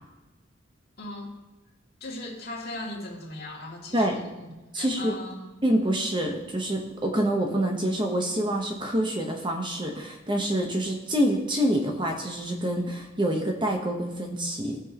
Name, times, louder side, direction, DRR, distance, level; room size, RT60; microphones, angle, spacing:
voice 1, 1.0-1.5 2.0-5.5, left 1 dB, 50° left, -3 dB, 2.5 m, -38 dB
voice 2, 4.7-5.2 5.6-14.8, right 1 dB, 25° right, 1 dB, 1.1 m, -26 dB
18.0 x 6.3 x 3.0 m, 1.1 s
head